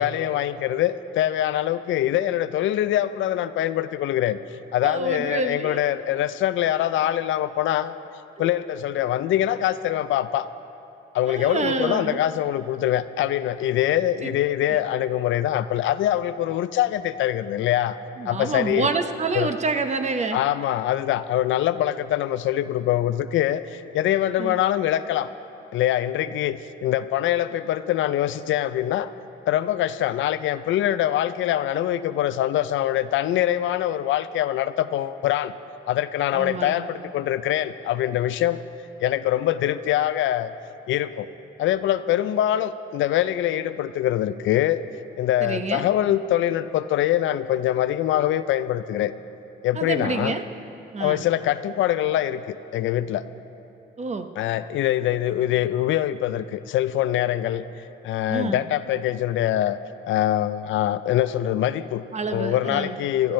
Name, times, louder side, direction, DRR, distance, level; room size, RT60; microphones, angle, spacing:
voice 1, 0.0-4.4 4.7-8.0 8.4-10.5 11.1-18.0 18.3-18.9 19.3-19.5 20.3-25.3 25.7-29.1 29.5-35.5 35.9-38.6 39.0-40.5 40.9-41.3 41.6-44.8 45.2-49.1 49.6-50.4 51.0-53.2 54.4-59.8 60.1-62.0 62.3-63.3, left 12 dB, 75° left, 13 dB, 0.4 m, -24 dB
voice 2, 4.8-5.8 8.4-8.5 11.3-12.2 14.7-14.8 18.2-20.4 24.4-24.6 36.3-36.9 45.4-45.9 49.7-50.4 50.9-51.2 54.0-54.3 58.3-58.6 62.1-63.0, right 4 dB, 35° right, 7 dB, 0.8 m, -28 dB
19.5 x 13.0 x 3.2 m, 2.9 s
cardioid pair, 90°, 20 cm